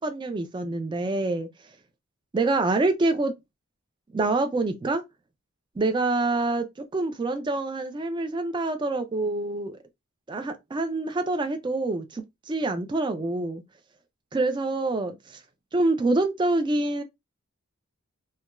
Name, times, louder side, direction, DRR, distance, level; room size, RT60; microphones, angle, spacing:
voice 1, 0.0-1.5 2.3-3.3 4.1-5.0 5.8-6.7 6.9-9.8 10.3-13.6 14.3-15.2 15.7-17.0, right 2 dB, 20° right, 0.3 m, -26 dB
2.3 x 2.2 x 2.9 m
head